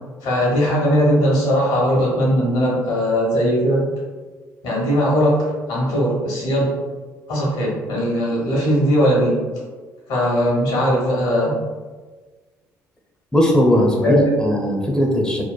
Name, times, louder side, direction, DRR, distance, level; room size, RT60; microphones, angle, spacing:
voice 1, 0.2-3.8 4.6-6.8 7.3-9.4 10.1-11.5 14.0-14.2, equal, 80° left, -4 dB, 1.0 m, -19 dB
voice 2, 13.3-15.4, equal, 10° left, 0 dB, 0.6 m, -18 dB
3.0 x 2.0 x 2.3 m, 1.4 s
supercardioid pair, 65°, 7 cm